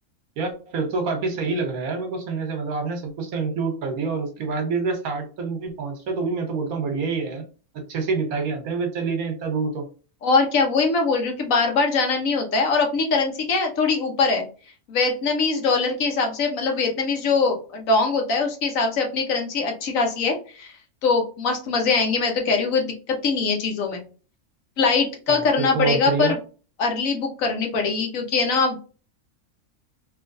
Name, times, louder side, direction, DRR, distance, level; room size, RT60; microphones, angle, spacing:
voice 1, 0.4-7.4 7.9-9.9 25.3-26.3, right 4 dB, 75° right, 4 dB, 1.4 m, -27 dB
voice 2, 10.2-14.4 14.9-20.7 21.0-24.0 24.8-26.4 26.8-28.8, left 4 dB, 65° left, 3 dB, 1.2 m, -22 dB
3.2 x 2.8 x 2.6 m, 0.36 s
omnidirectional pair, 1.5 m